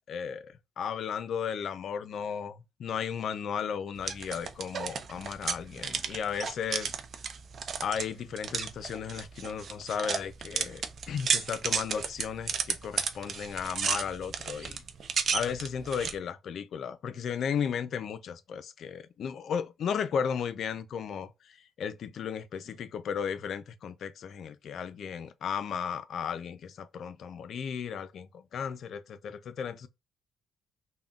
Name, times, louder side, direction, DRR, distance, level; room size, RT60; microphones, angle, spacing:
voice 1, 0.1-6.9 7.8-14.8 15.3-21.3 21.8-29.9, left 7 dB, 65° left, 0.4 m, -35 dB
sound 1, 4.0-16.2, right 6 dB, 55° right, 0.4 m, -33 dB
3.6 x 2.1 x 2.3 m
cardioid pair, 90°, 0 cm